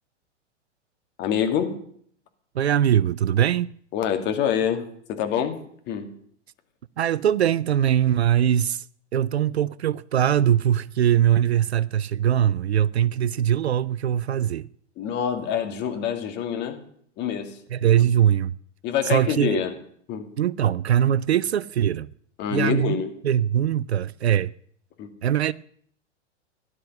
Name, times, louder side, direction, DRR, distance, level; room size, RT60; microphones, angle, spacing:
voice 1, 1.2-1.8 3.9-5.6 5.9-6.1 15.0-16.8 17.2-17.6 18.8-19.7 20.1-20.3 22.4-23.1 25.0-25.1, left 8 dB, 30° left, 2.3 m, -26 dB
voice 2, 2.5-3.7 7.0-8.8 9.1-14.7 17.7-18.5 19.0-19.6 20.4-22.1 22.5-24.5 25.2-25.5, right 10 dB, 60° right, 0.6 m, -21 dB
17.0 x 11.0 x 6.3 m
figure-of-eight pair, 105°, 37 cm